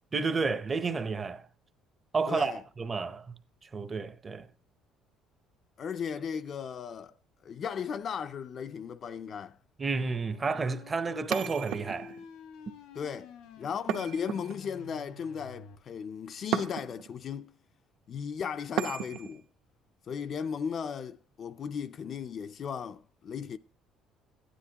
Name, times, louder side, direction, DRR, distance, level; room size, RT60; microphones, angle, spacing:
voice 1, 0.1-1.5 2.1-3.3 3.7-4.5 9.8-12.1, right 4 dB, 25° right, 0.6 m, -31 dB
voice 2, 2.3-2.6 5.8-7.1 7.4-9.6 12.9-13.3 13.6-17.5 18.1-19.5 20.1-23.6, left 7 dB, 40° left, 0.4 m, -36 dB
sound 1, 9.8-15.8, left 5 dB, 90° left, 1.5 m, -50 dB
sound 2, 11.3-12.3 13.9-14.9 16.5-17.1 18.8-19.4, right 9 dB, 70° right, 0.8 m, -34 dB
13.0 x 9.9 x 2.8 m
cardioid pair, 140°, 0 cm